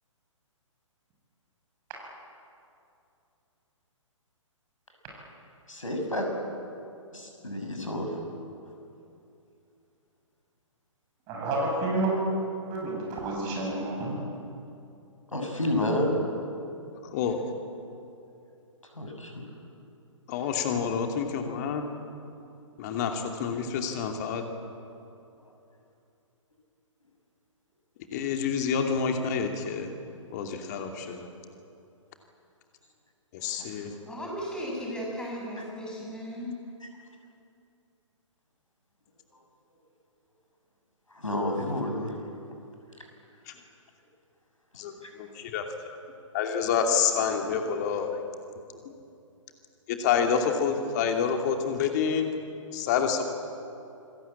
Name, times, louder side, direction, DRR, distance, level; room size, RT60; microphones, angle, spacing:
voice 1, 5.7-6.3 7.1-8.1 15.3-16.2 19.0-19.5 33.6-33.7 41.1-42.1 45.0-45.1, left 1 dB, 75° left, 3 dB, 6.8 m, -30 dB
voice 2, 11.3-12.2 12.7-14.2, right 2 dB, 25° right, -1 dB, 7.7 m, -29 dB
voice 3, 17.0-17.4 20.3-21.8 22.8-24.4 28.1-29.9 30.3-31.2 33.3-33.9 43.5-43.6 44.8-44.9 45.2-46.0 46.3-48.1 49.9-52.3 52.7-53.2, left 6 dB, 35° left, 4 dB, 2.6 m, -28 dB
voice 4, 34.0-36.6, equal, 5° left, -2 dB, 6.8 m, -36 dB
28.0 x 20.5 x 8.7 m, 2.6 s
figure-of-eight pair, 125°, 17 cm